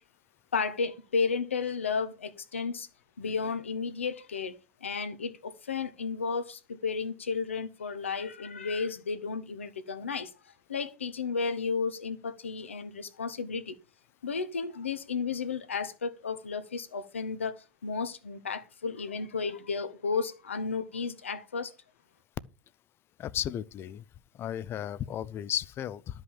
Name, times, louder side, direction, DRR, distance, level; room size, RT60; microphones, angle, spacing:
voice 1, 0.5-2.9 3.2-10.3 10.7-13.8 14.2-21.7, left 5 dB, 80° left, 1.4 m, -33 dB
voice 2, 23.2-24.0 24.3-26.2, left 11 dB, 35° left, 0.7 m, -34 dB
12.5 x 5.6 x 7.3 m
figure-of-eight pair, 80°, 7 cm